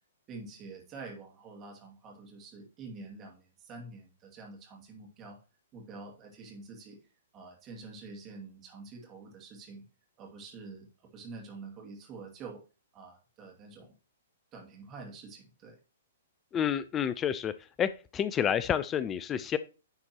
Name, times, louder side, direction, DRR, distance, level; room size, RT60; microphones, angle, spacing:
voice 1, 0.3-5.4 5.7-7.0 7.3-9.8 10.2-10.9 11.1-12.6 12.9-13.9 14.5-15.8, right 3 dB, 25° right, 0 dB, 2.4 m, -47 dB
voice 2, 16.5-17.5 17.8-19.6, left 9 dB, 20° left, 15 dB, 0.4 m, -29 dB
10.5 x 4.3 x 3.0 m, 0.32 s
figure-of-eight pair, 115°, 0 cm